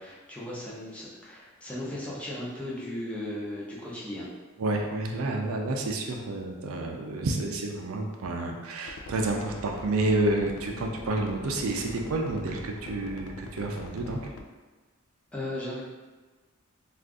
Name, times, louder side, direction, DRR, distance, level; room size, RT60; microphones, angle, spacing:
voice 1, 0.0-4.3 15.3-15.8, left 1 dB, 5° left, -7 dB, 0.6 m, -36 dB
voice 2, 4.6-14.2, right 2 dB, 80° right, 2 dB, 0.4 m, -29 dB
sound 1, 8.9-14.4, left 2 dB, 90° left, 0.4 m, -42 dB
2.5 x 2.4 x 3.5 m, 1.3 s
head